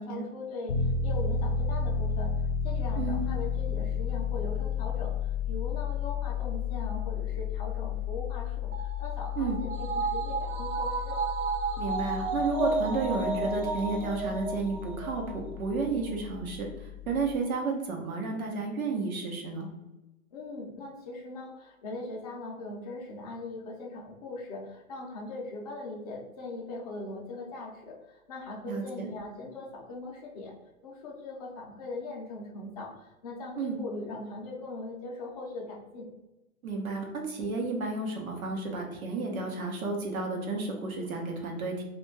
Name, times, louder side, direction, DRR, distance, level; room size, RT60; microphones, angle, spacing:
voice 1, 0.0-11.2 20.3-30.5 30.8-36.1, left 2 dB, 30° left, -2 dB, 0.5 m, -40 dB
Piano, 0.7-17.4, left 6 dB, 80° left, 0.6 m, -33 dB
sound 1, 8.7-15.4 15.7-15.8, right 4 dB, 60° right, 0.7 m, -32 dB
voice 2, 11.8-19.7 28.6-29.1 33.6-33.8 36.6-41.8, right 3 dB, 85° right, 1 dB, 0.9 m, -32 dB
2.4 x 2.2 x 3.1 m, 1.0 s
hypercardioid pair, 140°, 42 cm